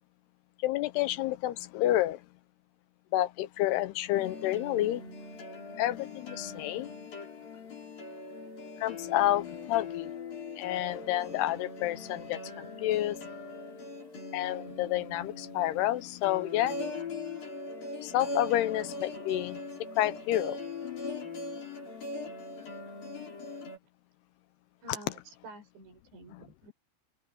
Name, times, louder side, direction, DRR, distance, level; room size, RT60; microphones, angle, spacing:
voice 1, 0.6-2.2 3.1-5.0 5.8-6.9 8.8-10.1 10.6-13.3 14.3-16.8 18.0-19.6 20.0-20.6 24.9-25.0 26.3-26.4, left 14 dB, 75° left, 2.7 m, -29 dB
sound 1, 4.1-23.8, left 3 dB, 55° left, 8.6 m, -41 dB
voice 2, 24.8-26.7, right 2 dB, 90° right, 7.9 m, -49 dB
omnidirectional pair, 4.9 m